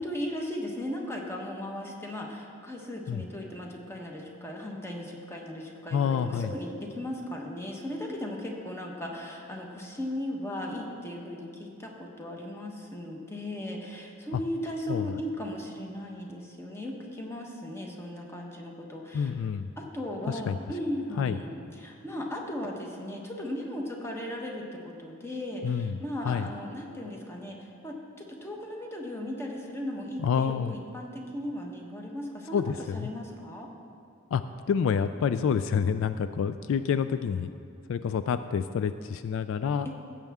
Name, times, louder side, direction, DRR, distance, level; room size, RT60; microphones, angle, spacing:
voice 1, 0.0-19.3 19.8-32.6 32.9-33.7 39.8-39.9, left 1 dB, 10° left, 0 dB, 1.1 m, -37 dB
voice 2, 5.9-6.5 14.9-15.2 19.1-19.7 20.3-20.6 21.2-21.4 25.6-26.0 26.2-26.5 30.2-30.7 32.5-33.1 34.3-34.4 34.7-37.5 37.9-39.9, left 7 dB, 65° left, 11 dB, 0.3 m, -28 dB
16.0 x 7.5 x 3.6 m, 2.3 s
head